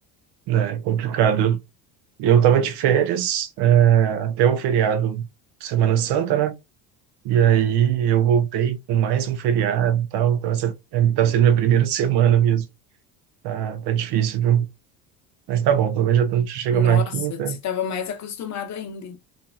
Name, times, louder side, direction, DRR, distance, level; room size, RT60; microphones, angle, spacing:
voice 1, 0.5-1.6 2.2-5.3 5.6-6.5 7.2-12.7 13.4-14.7 15.5-17.6, right 9 dB, 55° right, 0.7 m, -20 dB
voice 2, 16.7-19.2, left 7 dB, 35° left, 0.9 m, -30 dB
2.8 x 2.5 x 2.3 m
hypercardioid pair, 70°, 47 cm